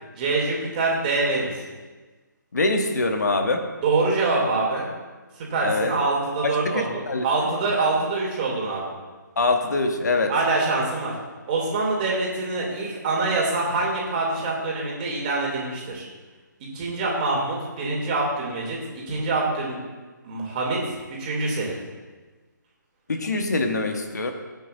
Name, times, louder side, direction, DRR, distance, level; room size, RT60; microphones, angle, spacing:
voice 1, 0.1-1.5 3.8-4.9 5.4-8.9 10.3-11.1 11.5-16.0 16.6-18.8 19.1-19.8 20.2-20.8 21.1-21.7, right 3 dB, 25° right, -3 dB, 2.9 m, -25 dB
voice 2, 2.5-3.6 5.6-5.9 6.6-7.2 9.4-10.3 23.1-24.3, left 3 dB, 55° left, 4 dB, 1.4 m, -24 dB
18.5 x 9.3 x 2.7 m, 1.3 s
figure-of-eight pair, 150°, 11 cm